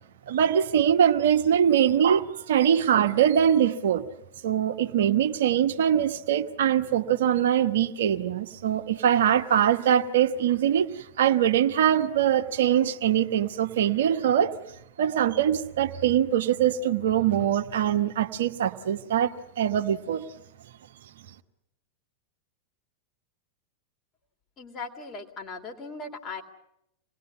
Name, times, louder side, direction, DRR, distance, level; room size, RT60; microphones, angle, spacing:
voice 1, 0.3-4.0 4.4-10.9 11.2-14.5 15.0-20.2, right 9 dB, 60° right, 7 dB, 1.2 m, -23 dB
voice 2, 24.6-26.4, left 3 dB, 30° left, 3 dB, 3.1 m, -38 dB
26.5 x 20.0 x 9.6 m, 0.82 s
figure-of-eight pair, 90°, 0 cm